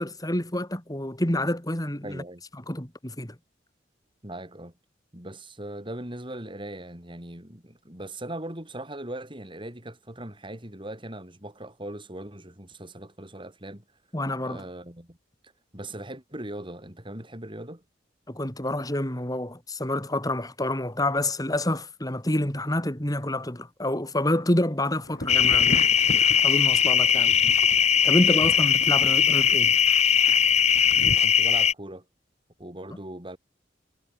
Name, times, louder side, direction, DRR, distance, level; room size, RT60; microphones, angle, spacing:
voice 1, 0.0-2.2 2.7-3.3 14.1-14.6 18.3-25.7 26.2-27.3 28.0-29.7, left 1 dB, 20° left, 3.4 m, -28 dB
voice 2, 2.0-2.4 4.2-4.7 5.1-13.8 14.4-15.2 15.7-17.8 31.2-32.0 32.6-33.4, right 1 dB, 30° right, 6.6 m, -39 dB
Thunder, 25.0-31.2, left 1 dB, 55° left, 5.0 m, -38 dB
sound 1, 25.3-31.7, left 8 dB, 35° left, 0.7 m, -20 dB
head